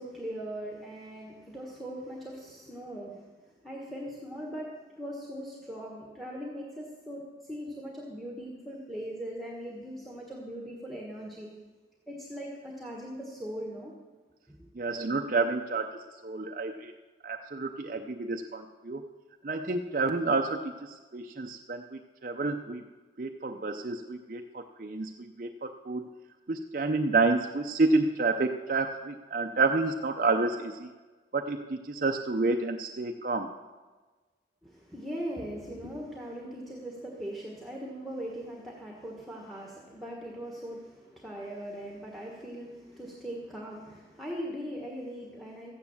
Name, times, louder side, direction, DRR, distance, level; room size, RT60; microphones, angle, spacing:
voice 1, 0.0-3.3 3.6-7.2 7.5-11.5 12.1-13.9 14.5-14.7 34.6-45.7, equal, ahead, -2 dB, 1.4 m, -40 dB
voice 2, 14.8-16.9 17.2-19.1 19.4-22.8 23.2-26.1 26.5-30.9 31.3-33.5, right 3 dB, 45° right, 4 dB, 0.6 m, -29 dB
14.0 x 9.5 x 7.1 m, 1.3 s
head